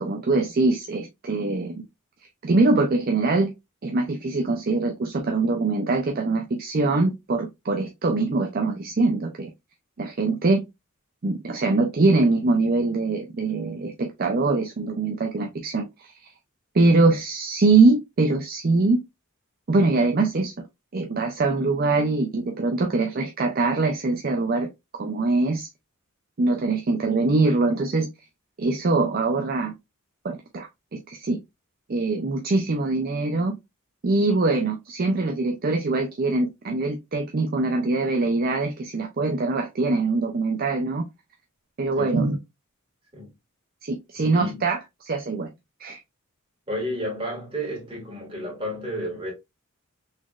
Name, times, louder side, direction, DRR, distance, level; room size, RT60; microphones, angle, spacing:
voice 1, 0.0-1.9 2.4-3.5 3.8-9.5 10.0-10.6 11.2-16.1 16.7-19.0 19.7-20.5 20.9-25.7 26.4-28.1 28.6-29.7 30.2-30.7 31.1-31.4 31.9-33.6 34.0-41.0 41.8-42.4 43.8-45.5 45.8-46.0, right 3 dB, 45° right, 0.5 m, -23 dB
voice 2, 16.8-17.1 42.0-42.2 43.1-43.3 44.2-44.6 46.7-49.3, equal, 25° right, 2.1 m, -32 dB
4.1 x 3.0 x 2.3 m
head